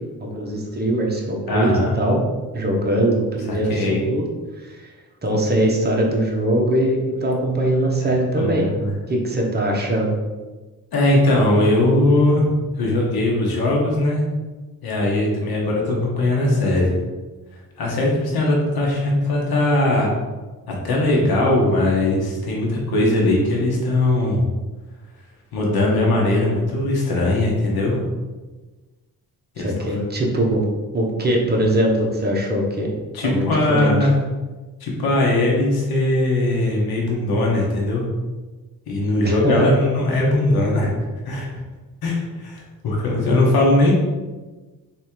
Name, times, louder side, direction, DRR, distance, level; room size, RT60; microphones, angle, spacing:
voice 1, 0.2-2.2 2.5-4.3 4.6-4.9 5.2-8.7 9.1-10.1 29.6-30.7 30.9-32.9 33.2-34.1 39.2-39.7, right 1 dB, 25° right, -1 dB, 1.1 m, -21 dB
voice 2, 1.5-1.9 3.5-4.0 8.4-8.9 10.9-12.4 12.8-14.2 14.8-16.9 17.8-20.1 20.7-24.5 25.5-28.0 29.6-29.9 33.1-34.1 34.8-38.0 38.9-40.9 41.2-41.5 42.0-43.9, left 1 dB, 75° left, -2 dB, 1.3 m, -20 dB
3.4 x 3.3 x 4.6 m, 1.2 s
cardioid pair, 95°, 37 cm